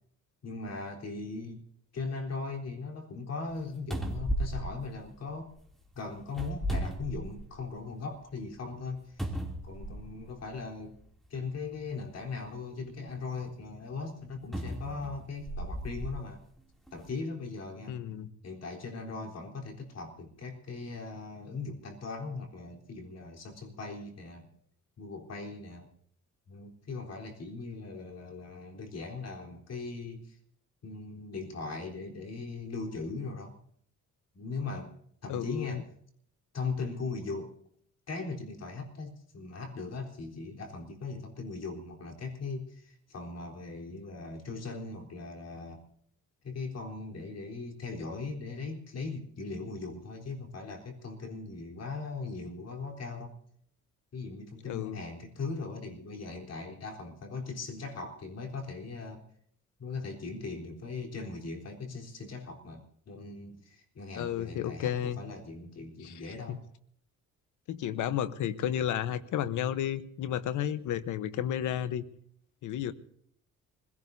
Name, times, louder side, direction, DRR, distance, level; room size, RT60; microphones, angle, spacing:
voice 1, 0.4-1.6 1.9-5.5 5.9-9.2 9.6-11.0 11.3-16.4 16.9-18.0 18.4-24.5 25.0-25.9 26.5-30.4 30.8-33.5 34.3-35.0 35.2-35.9 36.5-37.6 38.1-45.8 46.4-53.3 54.1-59.2 59.8-66.6, left 3 dB, 55° left, 2 dB, 3.9 m, -39 dB
sound 1, 3.5-3.6 3.9-5.6 6.3-7.7 8.1-8.2 9.2-10.3 11.2-11.4 14.5-16.2 16.9-17.0, equal, ahead, 2.8 m, -35 dB
voice 2, 17.9-18.3 35.3-35.8 54.7-55.0 64.1-65.2 66.0-66.6 67.7-72.0 72.6-72.9, left 10 dB, 80° left, 14 dB, 1.0 m, -32 dB
26.0 x 17.0 x 2.7 m, 0.66 s
cardioid pair, 90°, 30 cm